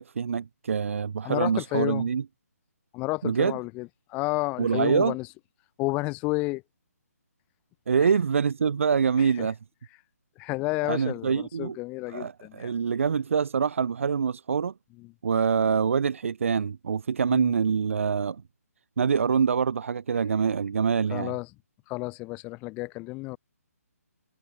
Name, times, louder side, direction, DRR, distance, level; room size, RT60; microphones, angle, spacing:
voice 1, 0.0-2.2 3.2-3.6 4.6-5.1 7.9-9.6 10.9-11.8 12.1-14.7 15.2-18.4 19.0-21.3, right 6 dB, 55° right, 1.3 m, -25 dB
voice 2, 1.2-2.1 2.9-5.3 5.8-6.6 8.0-8.1 9.2-9.5 10.4-12.7 15.0-15.1 17.3-17.5 21.1-21.5 21.9-23.4, left 23 dB, 15° left, 0.4 m, -31 dB
figure-of-eight pair, 145°, 9 cm